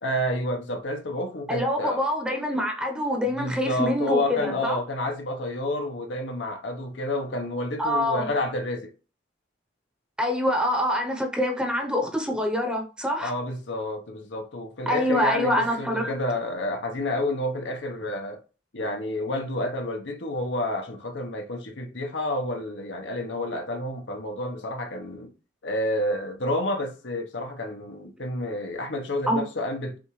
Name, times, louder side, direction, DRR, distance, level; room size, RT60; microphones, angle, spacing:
voice 1, 0.0-2.1 3.2-8.9 13.2-18.4 18.7-25.3 25.6-30.0, left 1 dB, 75° left, 1.0 m, -29 dB
voice 2, 1.5-4.8 7.8-8.3 10.2-13.3 14.9-16.1 29.3-29.4, left 1 dB, 5° right, 0.9 m, -25 dB
6.0 x 2.5 x 3.2 m
head